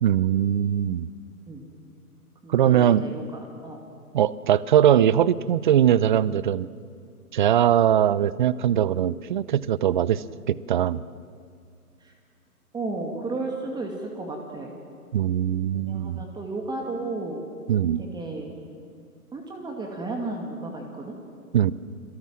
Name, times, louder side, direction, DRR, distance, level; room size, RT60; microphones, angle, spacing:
voice 1, 0.0-1.1 2.5-3.0 4.1-6.7 7.3-11.0 15.1-16.2 17.7-18.0 21.5-21.7, right 10 dB, 35° right, 19 dB, 0.6 m, -21 dB
voice 2, 2.4-3.8 12.0-12.1 12.7-14.7 15.7-17.4 18.0-18.5 19.3-21.2, right 2 dB, 10° right, 1 dB, 2.4 m, -33 dB
30.0 x 23.0 x 7.6 m, 2.3 s
figure-of-eight pair, 130°, 45 cm